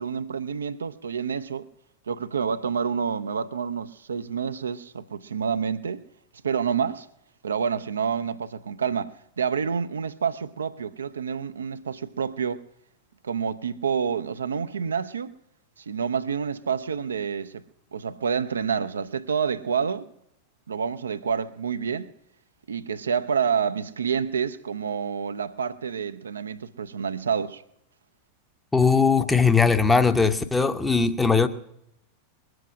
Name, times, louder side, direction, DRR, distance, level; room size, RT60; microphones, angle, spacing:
voice 1, 0.0-1.7 2.1-6.0 6.4-7.1 7.4-12.6 13.2-15.3 15.8-17.6 17.9-20.1 20.7-22.1 22.7-27.6, right 6 dB, 70° right, 0.5 m, -28 dB
voice 2, 28.7-31.5, left 5 dB, 10° left, 0.8 m, -20 dB
21.0 x 7.8 x 6.2 m
figure-of-eight pair, 90°, 0 cm